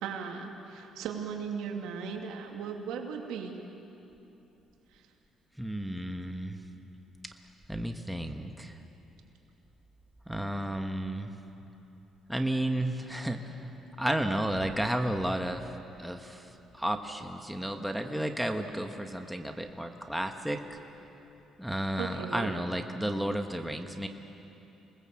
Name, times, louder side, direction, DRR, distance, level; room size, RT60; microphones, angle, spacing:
voice 1, 0.0-3.6 4.9-5.0 22.0-22.5, right 6 dB, 90° right, 2 dB, 2.6 m, -37 dB
voice 2, 5.6-6.6 7.7-8.8 10.3-11.3 12.3-15.7 16.0-20.8 21.6-24.1, right 1 dB, 5° right, 4 dB, 1.5 m, -32 dB
27.0 x 19.5 x 7.7 m, 3.0 s
cardioid pair, 105°, 0 cm